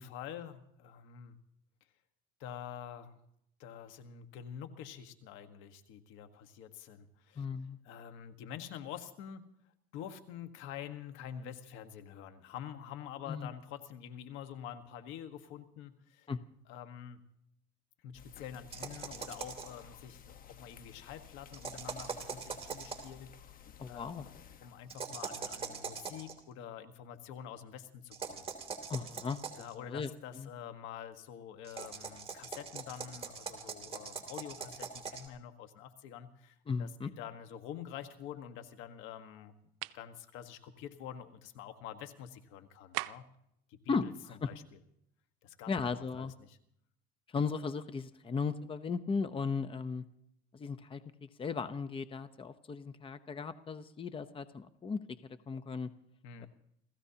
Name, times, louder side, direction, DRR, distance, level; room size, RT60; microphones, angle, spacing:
voice 1, 0.0-1.4 2.4-3.2 3.6-7.4 7.8-9.5 9.9-16.3 16.7-17.2 18.0-24.3 24.6-28.5 29.5-36.9 37.2-39.5 39.9-43.2 43.7-44.6 45.4-46.6 56.2-56.5, left 9 dB, 80° left, 8 dB, 1.5 m, -47 dB
voice 2, 7.4-7.8 13.3-13.5 16.3-16.4 23.8-24.3 28.9-30.1 30.4-30.5 36.7-37.1 43.9-44.5 45.7-46.3 47.3-50.0 50.5-51.0 51.4-55.2 55.5-55.9 56.4-56.5, left 5 dB, 25° left, 11 dB, 0.8 m, -36 dB
sound 1, 18.1-25.1, left 8 dB, 45° left, 1.2 m, -55 dB
sound 2, 18.7-19.8 21.5-23.1 24.9-26.3 28.1-29.7 31.6-35.3, right 6 dB, 30° right, 3.1 m, -42 dB
sound 3, 39.7-40.1 42.9-43.4, right 20 dB, 80° right, 0.5 m, -39 dB
29.0 x 15.5 x 2.9 m, 0.73 s
cardioid pair, 105°, 20 cm